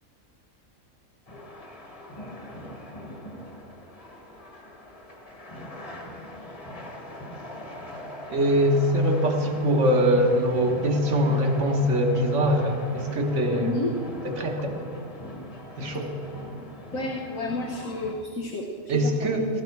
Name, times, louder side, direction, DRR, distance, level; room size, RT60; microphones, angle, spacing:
sound 1, 1.3-18.1, left 1 dB, 30° left, 1.2 m, -41 dB
voice 1, 8.3-13.7 14.2-14.8 15.8-16.1 18.9-19.5, equal, 60° right, 3 dB, 1.7 m, -23 dB
voice 2, 13.5-14.0 16.9-18.9 19.2-19.3, left 2 dB, 90° left, 0 dB, 1.6 m, -31 dB
16.5 x 13.0 x 4.7 m, 2.3 s
omnidirectional pair, 1.4 m